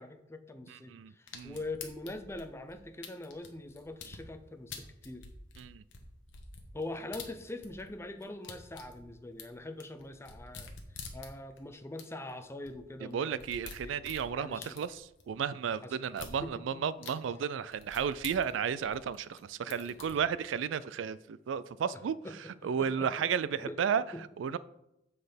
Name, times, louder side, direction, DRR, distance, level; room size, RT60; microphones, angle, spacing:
voice 1, 0.0-5.2 6.7-13.4 13.8-13.9 14.4-14.8 15.8-16.0 16.4-16.8 19.7-20.0 22.2-22.4 22.8-23.3 23.6-23.8 24.1-24.2, left 2 dB, 15° left, 9 dB, 0.5 m, -43 dB
voice 2, 0.7-1.6 5.6-5.8 13.0-22.2 22.6-24.0 24.4-24.6, right 7 dB, 75° right, 18 dB, 0.3 m, -33 dB
sound 1, 1.3-4.2 4.7-7.9 8.2-11.6 12.0-12.1 12.3-12.4 12.7-12.8 13.1-15.2 16.1-16.4 17.0-17.1 17.7-19.4 19.7-20.2, left 5 dB, 75° left, 1.1 m, -47 dB
7.7 x 4.1 x 5.1 m, 0.87 s
head